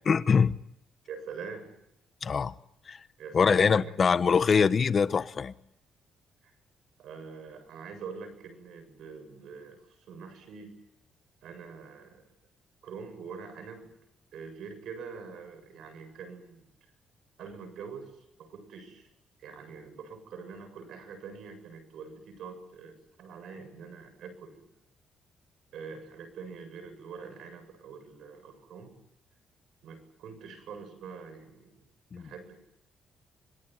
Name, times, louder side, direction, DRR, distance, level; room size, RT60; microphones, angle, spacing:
voice 1, 0.0-0.6 2.2-2.5 2.9-3.0 3.3-5.5 32.1-32.2, left 6 dB, 45° left, 1.1 m, -23 dB
voice 2, 1.1-1.7 3.2-4.0 6.4-6.5 7.0-10.7 11.4-12.3 12.8-13.9 14.3-16.7 17.4-19.1 19.4-24.7 25.7-28.9 29.8-31.8 32.2-32.6, right 5 dB, 75° right, 7.5 m, -44 dB
26.0 x 22.5 x 9.5 m
cardioid pair, 90°, 0 cm